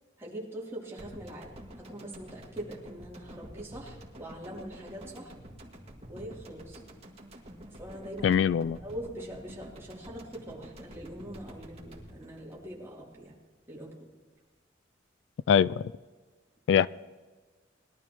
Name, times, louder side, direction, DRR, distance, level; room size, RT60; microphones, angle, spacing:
voice 1, 0.2-5.3 6.1-6.8 7.7-8.4 8.8-13.3 13.7-14.1, right 1 dB, 15° right, -5 dB, 3.2 m, -43 dB
sound 1, 1.0-13.3 13.6-13.7, equal, 35° right, 2.0 m, -49 dB
voice 2, 8.2-8.8 15.5-15.9 16.7-16.9, left 8 dB, 75° left, 19 dB, 0.3 m, -23 dB
21.0 x 12.5 x 3.1 m, 1.4 s
head